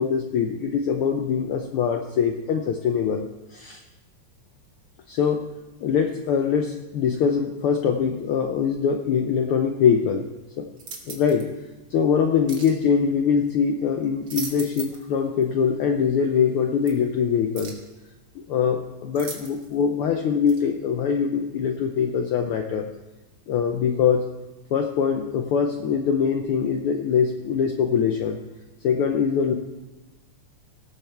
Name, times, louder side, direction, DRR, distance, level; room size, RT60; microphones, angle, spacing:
voice 1, 0.0-3.2 3.5-3.8 5.1-5.4 5.8-10.3 10.6-10.7 11.1-11.5 11.9-17.8 18.4-22.9 23.5-24.2 24.7-28.4 28.8-29.5, left 7 dB, 90° left, 5 dB, 1.2 m, -23 dB
sound 1, 10.8-11.5 12.5-12.8 14.0-15.1 15.4-15.5 16.9-17.0 17.5-17.9 19.1-19.8 20.5-20.6, right 5 dB, 50° right, 2.0 m, -38 dB
17.5 x 6.7 x 4.5 m, 1.1 s
omnidirectional pair, 3.3 m